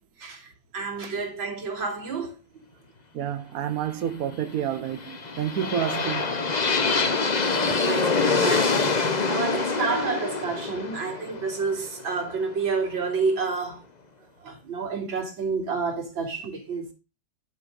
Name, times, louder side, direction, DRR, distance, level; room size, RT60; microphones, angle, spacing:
voice 1, 0.2-2.4 7.2-13.8 14.4-16.9, right 4 dB, 80° right, 3.7 m, -30 dB
voice 2, 3.1-6.4, right 9 dB, 55° right, 1.1 m, -29 dB
sound 1, 4.9-12.8, left 4 dB, 35° left, 0.8 m, -25 dB
11.0 x 5.6 x 5.3 m
omnidirectional pair, 2.1 m